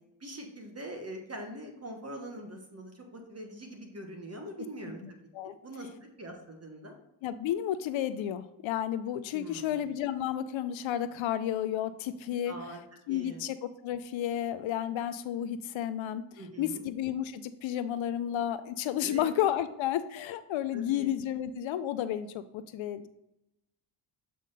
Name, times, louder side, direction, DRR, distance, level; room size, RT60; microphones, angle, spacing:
voice 1, 0.2-5.2 5.4-5.9 6.2-7.0 9.3-9.8 12.5-12.8 13.1-13.4 16.4-16.9 19.0-19.3 20.7-21.1, right 1 dB, 30° right, 2 dB, 1.3 m, -43 dB
voice 2, 5.0-5.6 7.2-12.5 13.1-13.6 13.8-23.1, left 11 dB, 70° left, 12 dB, 0.5 m, -32 dB
7.4 x 3.6 x 4.0 m, 0.88 s
supercardioid pair, 60°, 48 cm